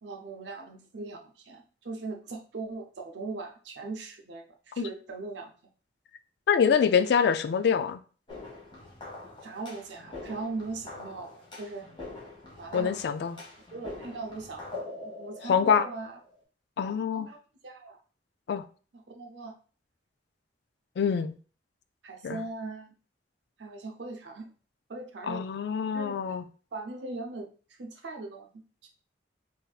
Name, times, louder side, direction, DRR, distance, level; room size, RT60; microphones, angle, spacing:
voice 1, 0.0-5.5 9.4-11.9 12.6-12.9 13.3-13.5 13.7-16.2 17.1-17.4 17.6-18.0 18.9-19.6 22.0-22.9 23.6-24.5 24.9-25.4 25.9-26.4 26.7-28.9, right 3 dB, 75° right, 0.6 m, -40 dB
voice 2, 6.5-8.0 12.7-13.4 15.5-15.9 16.8-17.3 18.5-18.6 21.0-21.4 22.2-22.4 25.3-26.4, left 7 dB, 65° left, 0.3 m, -25 dB
sound 1, 8.3-16.4, left 2 dB, 30° left, 1.1 m, -44 dB
4.1 x 2.6 x 2.3 m
head